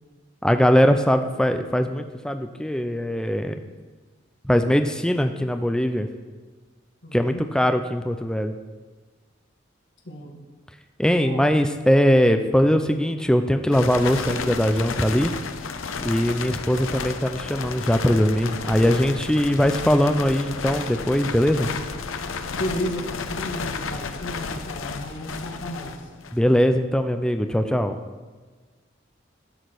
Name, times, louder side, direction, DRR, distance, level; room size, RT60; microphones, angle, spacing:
voice 1, 0.4-3.6 4.4-6.1 7.1-8.5 11.0-15.3 16.0-21.7 26.3-28.0, equal, 5° left, 7 dB, 0.4 m, -21 dB
voice 2, 7.0-7.4 10.1-10.3 11.2-11.4 22.5-26.1, equal, 65° left, -2 dB, 1.6 m, -33 dB
sound 1, 13.7-26.5, left 5 dB, 90° left, 0.7 m, -32 dB
12.5 x 5.1 x 6.0 m, 1.4 s
head